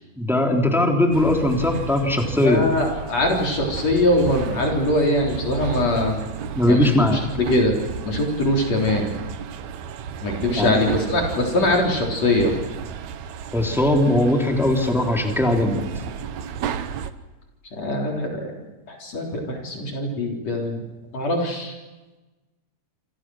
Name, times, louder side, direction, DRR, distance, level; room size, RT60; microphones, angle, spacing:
voice 1, 0.2-2.6 6.5-7.2 10.6-10.8 13.5-16.0, left 1 dB, ahead, 2 dB, 3.1 m, -20 dB
sound 1, 1.1-17.1, right 7 dB, 70° right, 2.3 m, -33 dB
voice 2, 2.4-6.1 6.6-7.8 8.0-9.1 10.2-12.5 17.7-20.9 21.1-21.7, left 1 dB, 55° left, 0 dB, 4.9 m, -22 dB
28.0 x 28.0 x 6.3 m, 1.2 s
omnidirectional pair, 3.6 m